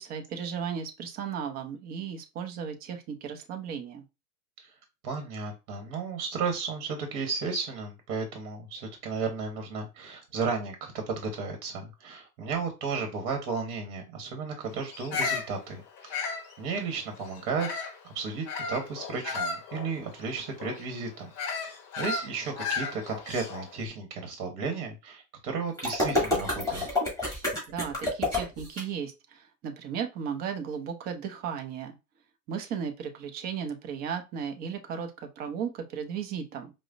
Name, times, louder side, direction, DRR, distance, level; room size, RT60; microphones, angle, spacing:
voice 1, 0.0-4.0 27.7-32.0 32.5-36.7, right 7 dB, 20° right, 6 dB, 0.4 m, -35 dB
voice 2, 5.0-16.2 16.6-17.7 18.0-21.3 22.0-26.9, right 4 dB, 45° right, 4 dB, 1.1 m, -34 dB
Bird vocalization bird call bird song, 14.9-18.0 18.5-23.8, left 4 dB, 30° left, 0.8 m, -35 dB
sound 1, 25.8-28.8, left 2 dB, 5° left, 2.0 m, -28 dB
4.8 x 2.0 x 2.4 m, 0.27 s
hypercardioid pair, 100°, 49 cm